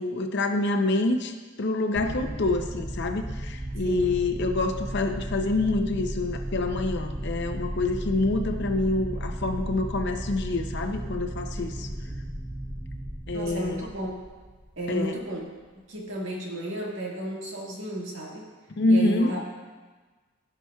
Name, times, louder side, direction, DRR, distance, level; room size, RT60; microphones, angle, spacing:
voice 1, 0.0-11.9 13.3-13.9 14.9-15.2 18.8-19.4, left 2 dB, 60° left, 6 dB, 0.6 m, -26 dB
sound 1, 1.9-14.9, right 1 dB, 5° right, 0.4 m, -35 dB
voice 2, 3.8-4.2 11.6-12.2 13.3-14.1 14.8-15.5 15.9-18.5 18.9-19.4, right 1 dB, 70° right, -2 dB, 1.7 m, -33 dB
16.0 x 5.9 x 2.3 m, 1.4 s
head